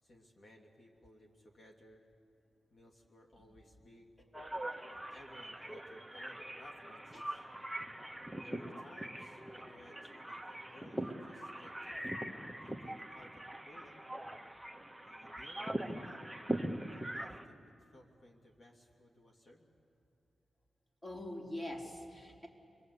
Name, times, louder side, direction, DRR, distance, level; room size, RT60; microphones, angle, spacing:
voice 1, 0.0-2.0 2.7-4.1 4.9-7.4 8.4-12.0 12.6-14.1 15.0-16.5 16.9-19.7, left 1 dB, 55° left, 0 dB, 2.6 m, -59 dB
sound 1, 4.3-17.4, right 1 dB, ahead, 1.5 m, -42 dB
voice 2, 21.0-22.5, left 1 dB, 20° left, 1 dB, 3.6 m, -43 dB
30.0 x 22.0 x 8.4 m, 2.5 s
cardioid pair, 75°, 0 cm